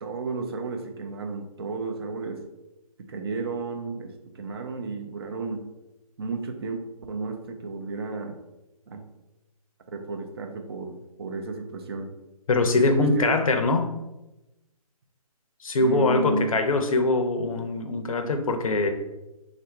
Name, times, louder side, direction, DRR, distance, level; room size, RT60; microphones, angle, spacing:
voice 1, 0.0-2.4 3.1-5.7 6.2-6.8 7.1-8.4 8.9-9.0 9.9-12.1 12.7-13.3 15.8-16.7, right 3 dB, 40° right, 5 dB, 0.6 m, -32 dB
voice 2, 12.5-13.9 15.6-18.9, left 2 dB, 65° left, 7 dB, 0.6 m, -23 dB
3.8 x 2.5 x 4.4 m, 0.99 s
figure-of-eight pair, 150°, 19 cm